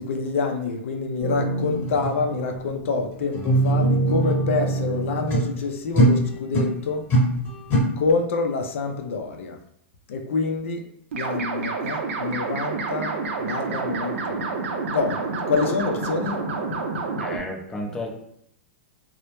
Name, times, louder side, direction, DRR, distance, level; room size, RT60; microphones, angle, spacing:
voice 1, 0.0-7.1 8.0-9.6 10.1-10.9 11.1-14.7 14.9-16.5, left 4 dB, 75° left, 3 dB, 0.4 m, -27 dB
sound 1, 1.2-5.6 5.9-6.7 7.1-7.8, right 1 dB, 30° left, 0.9 m, -22 dB
sound 2, 11.1-17.4, right 4 dB, 75° right, 0.5 m, -28 dB
voice 2, 17.2-18.2, left 1 dB, 10° left, 0 dB, 0.4 m, -32 dB
2.1 x 2.0 x 2.9 m, 0.74 s
hypercardioid pair, 130°, 7 cm